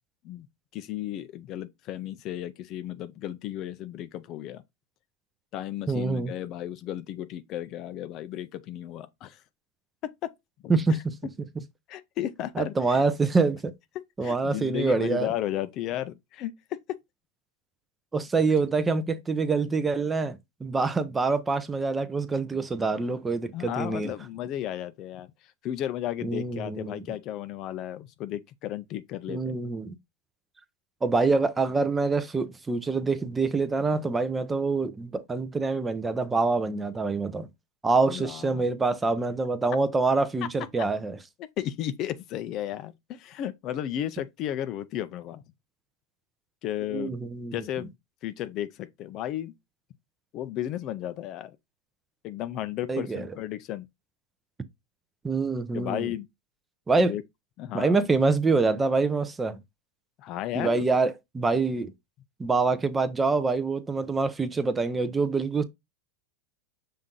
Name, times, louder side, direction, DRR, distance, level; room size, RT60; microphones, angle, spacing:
voice 1, 0.7-4.6 5.5-9.4 10.0-10.3 10.6-10.7 11.9-13.0 14.2-17.0 23.5-25.3 25.6-29.6 38.1-38.7 40.6-40.7 41.6-45.4 46.6-47.2 47.5-47.9 48.2-49.5 50.3-51.6 52.2-53.9 55.7-56.3 57.0-57.2 57.6-58.0 60.2-60.8, left 12 dB, 40° left, 0.4 m, -34 dB
voice 2, 5.9-6.3 10.7-11.1 12.6-13.7 14.2-15.3 18.1-24.1 26.2-27.0 29.3-29.9 31.0-37.5 37.8-41.2 46.9-47.5 52.9-53.3 55.2-56.1 56.9-57.1 57.7-59.6 60.5-61.9 62.4-65.6, right 3 dB, 15° right, 0.5 m, -26 dB
5.7 x 2.5 x 3.7 m
supercardioid pair, 130°, 0 cm